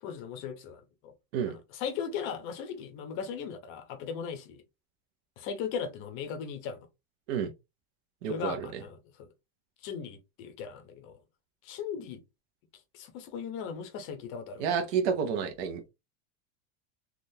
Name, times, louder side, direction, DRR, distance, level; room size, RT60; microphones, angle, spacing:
voice 1, 0.0-1.1 1.4-4.6 5.4-6.8 8.3-9.3 9.8-11.2 11.6-12.2 12.9-14.7, left 7 dB, 35° left, 0.6 m, -38 dB
voice 2, 8.2-8.8 14.6-15.9, right 7 dB, 65° right, 0.7 m, -30 dB
3.6 x 2.4 x 2.7 m
supercardioid pair, 170°, 35 cm